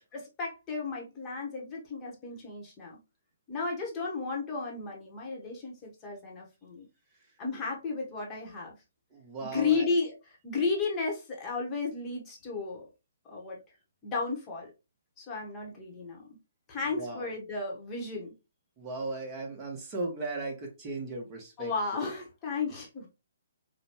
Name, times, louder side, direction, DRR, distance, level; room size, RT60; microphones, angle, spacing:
voice 1, 0.1-3.0 3.5-6.9 7.4-8.7 9.4-12.9 13.2-13.6 14.0-14.7 15.2-16.3 16.7-18.3 21.6-23.1, left 4 dB, 20° left, 1.0 m, -33 dB
voice 2, 9.1-9.9 17.0-17.3 18.8-22.0, right 2 dB, 25° right, 1.1 m, -37 dB
4.9 x 2.2 x 2.9 m
hypercardioid pair, 150°, 0 cm